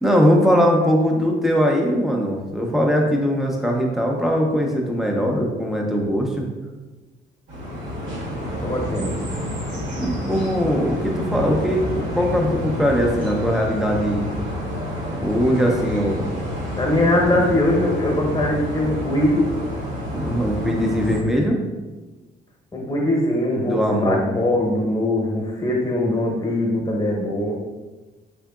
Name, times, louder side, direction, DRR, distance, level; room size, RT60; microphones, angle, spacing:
voice 1, 0.0-6.5 10.0-14.3 15.2-16.3 17.4-17.5 20.1-21.6 23.6-24.2, equal, ahead, 0 dB, 0.6 m, -20 dB
sound 1, 7.5-21.2, left 1 dB, 75° right, 1.2 m, -29 dB
voice 2, 8.6-9.1 16.7-19.5 22.7-27.5, left 1 dB, 20° left, -2 dB, 1.0 m, -21 dB
3.7 x 3.3 x 2.3 m, 1.2 s
cardioid pair, 90°, 20 cm